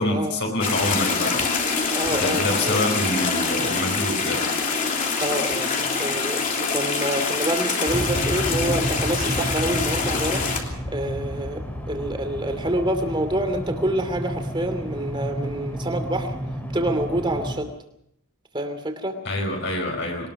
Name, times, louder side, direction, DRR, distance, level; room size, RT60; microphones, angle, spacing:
voice 1, 0.0-1.5 2.1-4.5 19.2-20.3, left 1 dB, 55° left, 1 dB, 5.0 m, -26 dB
sound 1, 0.6-10.6, left 4 dB, 35° left, 3.2 m, -25 dB
voice 2, 1.9-2.8 5.2-5.7 6.0-10.4 10.9-16.3 16.7-17.7 18.5-19.2, right 1 dB, 20° right, 7 dB, 2.7 m, -27 dB
sound 2, 7.9-17.6, equal, 10° left, 3.2 m, -31 dB
22.5 x 20.0 x 6.0 m, 0.74 s
head